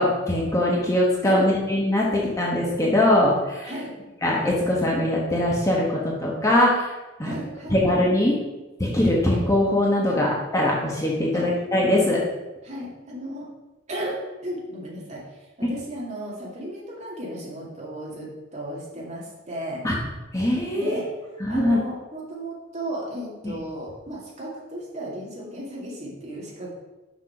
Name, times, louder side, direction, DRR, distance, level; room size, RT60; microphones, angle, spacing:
voice 1, 0.0-3.7 4.2-6.9 7.2-7.4 7.7-8.4 8.8-12.2 15.6-15.7 19.8-19.9 20.3-21.0 21.4-21.8 23.4-23.6, left 1 dB, 15° left, -4 dB, 1.3 m, -22 dB
voice 2, 7.2-7.8 10.1-10.3 11.3-11.5 12.6-13.5 13.9-19.8 20.7-26.7, right 1 dB, 35° right, -5 dB, 2.4 m, -35 dB
6.3 x 6.0 x 5.7 m, 1.1 s
head